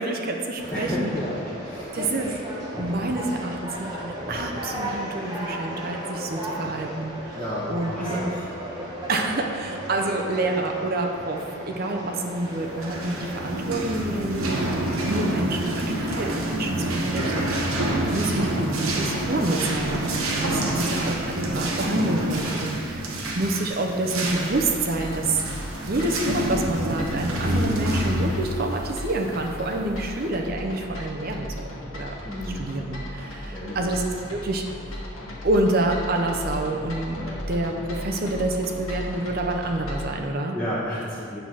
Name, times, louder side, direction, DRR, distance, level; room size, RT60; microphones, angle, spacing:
voice 1, 0.0-1.1 1.9-2.3 2.8-7.4 7.7-8.3 9.1-14.6 14.9-23.1 23.3-25.4 25.8-32.1 32.5-34.6 35.4-37.2 37.5-40.6, right 2 dB, 45° right, 2 dB, 0.6 m, -27 dB
Conversation, 0.6-13.6, right 1 dB, 20° right, 1.3 m, -35 dB
voice 2, 0.7-2.0 6.5-6.7 7.3-8.4 20.5-20.7 32.2-32.6 33.5-33.8 37.2-37.4 40.5-41.4, equal, 5° left, -10 dB, 1.0 m, -32 dB
sound 1, 12.6-30.0, right 1 dB, 80° right, 0.9 m, -28 dB
sound 2, 24.3-40.1, left 1 dB, 75° left, 1.4 m, -36 dB
8.3 x 3.9 x 6.1 m, 2.6 s
head